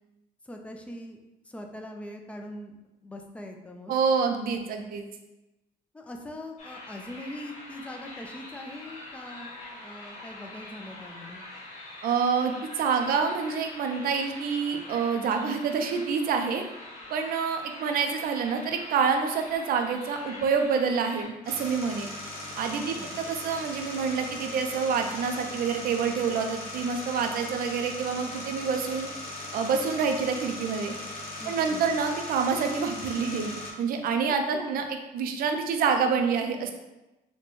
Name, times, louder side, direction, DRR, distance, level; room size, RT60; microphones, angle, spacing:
voice 1, 0.4-1.2 1.4-2.8 3.0-4.0 5.9-11.4 22.7-23.2 31.4-31.8 34.5-34.8, left 1 dB, 5° left, 3 dB, 0.4 m, -42 dB
voice 2, 3.9-5.0 12.0-16.6 17.1-22.1 22.6-29.1 29.5-30.9 31.5-34.9 35.1-36.7, right 5 dB, 60° right, 5 dB, 0.5 m, -27 dB
sound 1, 6.6-21.2, left 2 dB, 45° left, 1.2 m, -44 dB
sound 2, 21.4-33.7, left 1 dB, 60° left, 0.9 m, -39 dB
4.2 x 2.2 x 3.1 m, 1.0 s
cardioid pair, 110°, 17 cm